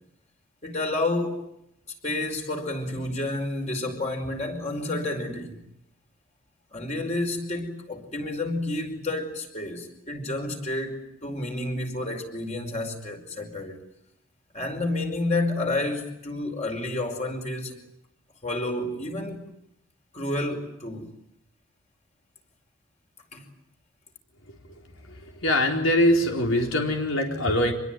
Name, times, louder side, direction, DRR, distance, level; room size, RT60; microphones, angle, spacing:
voice 1, 0.6-1.5 2.0-5.6 6.7-13.8 14.5-17.8 18.4-19.4 20.1-21.1 23.3-23.5, left 2 dB, 35° left, 5.2 m, -30 dB
voice 2, 25.1-27.7, left 1 dB, 75° left, 4.3 m, -23 dB
26.0 x 22.0 x 9.3 m
head